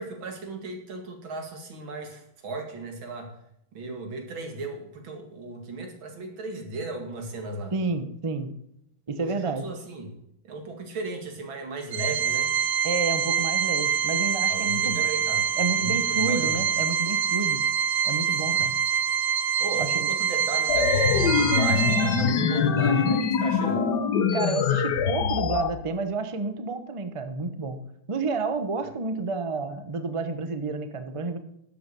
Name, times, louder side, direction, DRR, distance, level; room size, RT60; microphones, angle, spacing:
voice 1, 0.0-3.3 3.7-7.7 9.2-10.1 10.5-12.5 14.5-15.5 15.8-16.6 18.4-18.6 19.6-23.9, right 3 dB, 70° right, 3 dB, 2.9 m, -35 dB
voice 2, 7.7-8.5 9.1-9.7 12.8-15.0 15.6-17.6 18.0-18.8 19.8-20.1 24.3-27.8 28.1-31.4, right 3 dB, 35° right, 9 dB, 0.5 m, -30 dB
Organ, 11.9-22.5, right 8 dB, 90° right, 0.7 m, -25 dB
sound 1, 20.7-25.7, left 6 dB, 60° left, 1.4 m, -23 dB
11.5 x 7.9 x 6.8 m, 0.77 s
omnidirectional pair, 2.3 m